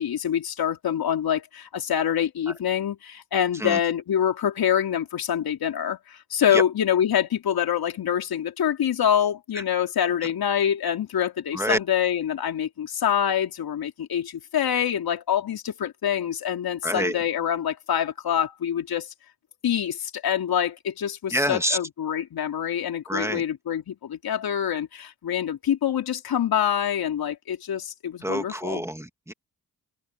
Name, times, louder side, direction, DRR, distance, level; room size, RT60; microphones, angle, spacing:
voice 1, 0.0-19.1 19.6-28.9, left 9 dB, 55° left, 3.4 m, -25 dB
voice 2, 16.8-17.2 21.3-21.8 23.1-23.4 28.2-29.3, equal, 5° right, 2.3 m, -27 dB
hypercardioid pair, 55°, 43 cm